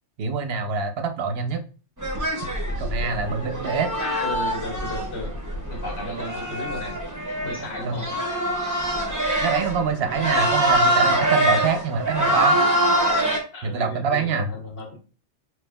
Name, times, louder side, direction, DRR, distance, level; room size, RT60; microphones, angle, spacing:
voice 1, 0.2-1.6 2.8-3.9 7.8-8.0 9.4-12.6 13.6-14.5, right 5 dB, 60° right, 7 dB, 0.8 m, -25 dB
sound 1, 2.0-13.4, right 1 dB, 20° right, 0.7 m, -24 dB
voice 2, 4.0-5.3 5.7-7.0 7.4-8.1 13.5-15.0, left 1 dB, 75° left, -7 dB, 2.0 m, -34 dB
5.2 x 3.1 x 2.2 m, 0.37 s
omnidirectional pair, 1.2 m